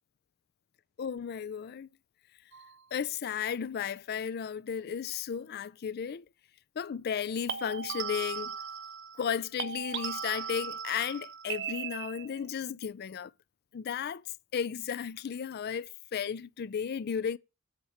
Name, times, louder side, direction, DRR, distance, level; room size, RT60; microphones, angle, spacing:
voice 1, 1.0-1.9 2.9-6.2 6.8-8.6 9.2-13.3 13.7-14.2 14.5-17.4, left 7 dB, 50° left, 0.4 m, -34 dB
sound 1, 2.5-2.8 7.5-9.3 9.6-12.5, right 7 dB, 55° right, 0.5 m, -38 dB
7.4 x 4.3 x 5.4 m
head